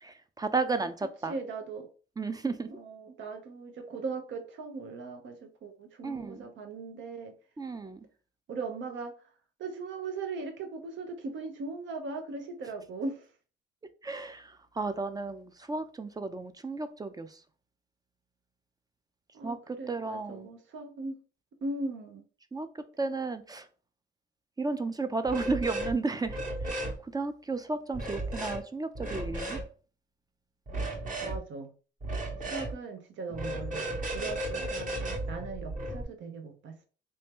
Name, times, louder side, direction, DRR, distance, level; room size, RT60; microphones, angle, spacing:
voice 1, 0.0-1.3 2.2-2.7 6.0-6.4 7.6-8.0 14.0-17.3 19.4-20.5 22.5-22.7 23.0-23.7 24.6-26.4 26.7-26.9 27.1-29.6, right 3 dB, 20° right, 0.4 m, -33 dB
voice 2, 1.3-1.9 2.7-7.3 8.5-9.1 9.6-13.3 19.3-21.2 21.6-22.2 31.2-31.7 32.5-36.9, right 3 dB, 70° right, 0.8 m, -39 dB
sound 1, 25.3-25.9 26.2-26.9 27.9-28.6 29.0-29.6 30.7-31.4 32.0-32.7 33.3-36.0, right 1 dB, 40° right, 1.2 m, -34 dB
3.2 x 2.7 x 3.5 m
cardioid pair, 90°, 20 cm